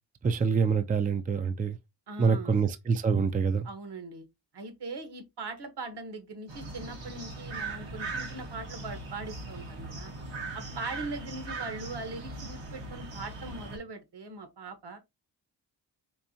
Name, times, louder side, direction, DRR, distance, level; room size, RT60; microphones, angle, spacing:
voice 1, 0.2-1.8 2.2-3.7, right 5 dB, 20° right, 0.4 m, -26 dB
voice 2, 2.1-2.6 3.6-4.3 4.5-10.1 10.5-15.0, right 3 dB, 65° right, 1.2 m, -40 dB
sound 1, 6.5-13.8, right 3 dB, 85° right, 1.3 m, -39 dB
4.5 x 2.6 x 2.7 m
cardioid pair, 65°, 43 cm